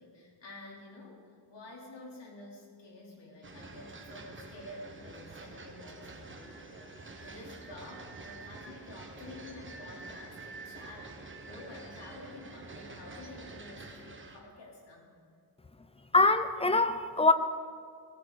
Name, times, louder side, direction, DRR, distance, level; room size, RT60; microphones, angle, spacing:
voice 1, 0.0-15.1, left 2 dB, 65° left, -3 dB, 4.1 m, -49 dB
sound 1, 3.4-14.4, right 3 dB, 25° right, 1.4 m, -47 dB
voice 2, 16.1-17.3, left 3 dB, 15° left, 10 dB, 0.6 m, -23 dB
18.5 x 15.5 x 4.2 m, 2.1 s
wide cardioid pair, 150°, 46 cm